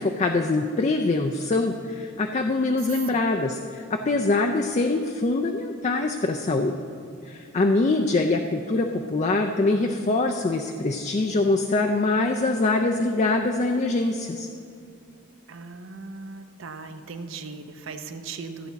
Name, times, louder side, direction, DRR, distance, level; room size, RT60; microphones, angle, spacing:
voice 1, 0.0-6.7 7.3-14.5, left 2 dB, 35° left, 3 dB, 0.4 m, -24 dB
voice 2, 2.9-3.2 15.5-18.7, right 4 dB, 65° right, 7 dB, 0.7 m, -38 dB
14.0 x 8.3 x 4.0 m, 2.5 s
head